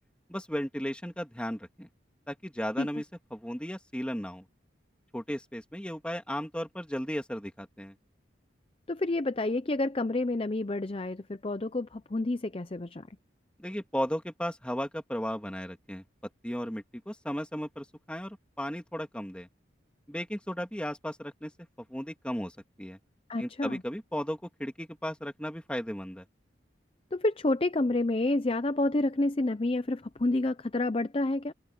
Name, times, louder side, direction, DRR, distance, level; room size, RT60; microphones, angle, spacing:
voice 1, 0.3-1.9 2.3-3.0 3.3-4.4 5.1-7.9 13.6-16.0 16.4-19.5 20.1-21.5 21.9-22.5 22.8-23.0 23.4-26.2, equal, 5° left, 2.5 m, -35 dB
voice 2, 8.9-13.0 23.3-23.8 27.1-31.5, left 2 dB, 30° left, 0.6 m, -29 dB
head